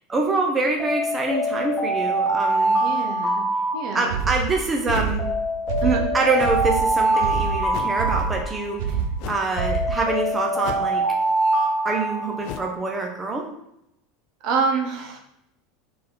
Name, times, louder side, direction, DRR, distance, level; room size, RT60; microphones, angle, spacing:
voice 1, 0.1-2.8 3.9-5.3 5.8-8.8 9.3-11.1 11.8-13.5, right 3 dB, 15° right, 1 dB, 0.8 m, -25 dB
Alarm, 0.8-4.5 5.2-8.9 9.6-12.8, right 1 dB, 15° left, 1.5 m, -24 dB
voice 2, 2.8-3.4 3.7-4.1 5.8-6.0 14.4-15.2, right 5 dB, 40° right, 3 dB, 0.8 m, -26 dB
sound 1, 4.1-10.2, right 6 dB, 70° right, 0.6 m, -27 dB
sound 2, 4.9-5.3 6.4-6.7 7.7-8.0 9.2-9.5 10.6-11.1 12.4-12.8, left 12 dB, 50° left, 0.4 m, -35 dB
4.6 x 4.2 x 5.4 m, 0.79 s
supercardioid pair, 175°, 0 cm